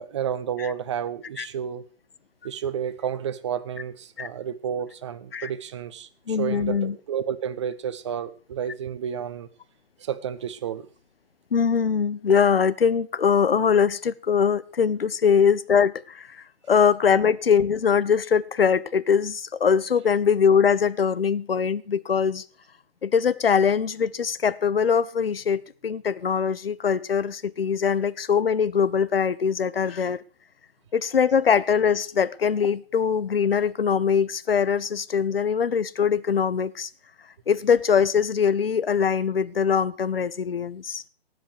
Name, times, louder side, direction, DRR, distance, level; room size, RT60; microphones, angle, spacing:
voice 1, 0.0-1.8 2.4-9.5 10.0-10.9, right 8 dB, 25° right, 0.8 m, -31 dB
voice 2, 6.3-6.9 11.5-16.4 16.7-22.4 23.0-30.2 30.9-36.9 37.5-41.0, left 6 dB, 60° left, 0.8 m, -22 dB
18.5 x 7.9 x 4.8 m
figure-of-eight pair, 135°, 32 cm